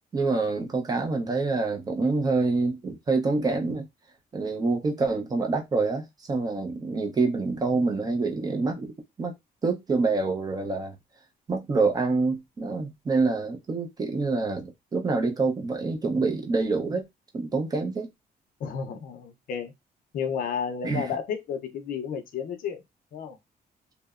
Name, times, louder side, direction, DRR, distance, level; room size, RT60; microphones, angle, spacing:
voice 1, 0.1-3.9 4.3-8.9 9.2-9.3 9.6-11.0 11.5-17.0 17.3-18.1 20.8-21.1, right 3 dB, 25° right, 0.4 m, -26 dB
voice 2, 18.6-19.7 20.1-22.8 23.1-23.4, left 7 dB, 60° left, 0.4 m, -32 dB
2.7 x 2.0 x 2.3 m
cardioid pair, 175°, 16 cm